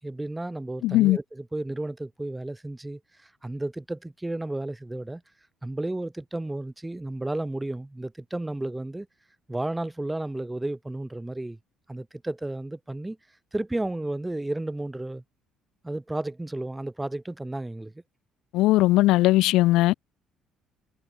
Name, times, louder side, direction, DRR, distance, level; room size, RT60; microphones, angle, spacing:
voice 1, 0.0-5.2 5.6-9.1 9.5-11.6 11.9-13.2 13.5-15.2 15.8-17.9, right 2 dB, 10° right, 6.0 m, -32 dB
voice 2, 0.8-1.2 18.5-20.0, left 17 dB, 75° left, 0.8 m, -19 dB
supercardioid pair, 70°, 0 cm